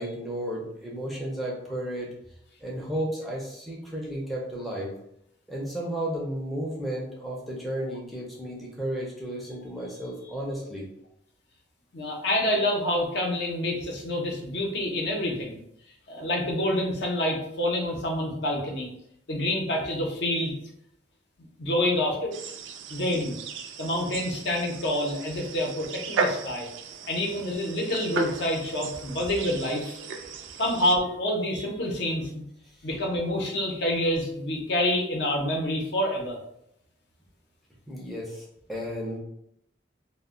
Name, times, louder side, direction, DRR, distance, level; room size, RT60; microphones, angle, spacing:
voice 1, 0.0-2.1 2.6-4.9 5.5-10.9 30.2-30.3 37.9-39.2, right 1 dB, ahead, -5 dB, 0.4 m, -33 dB
voice 2, 11.9-15.6 16.1-18.9 19.3-20.5 21.6-22.3 22.9-23.3 23.8-26.7 27.1-30.0 30.6-32.4 32.8-36.4, left 1 dB, 60° left, 0 dB, 0.6 m, -27 dB
sound 1, 22.3-31.0, right 4 dB, 70° right, 0.3 m, -35 dB
2.1 x 2.1 x 3.6 m, 0.74 s
head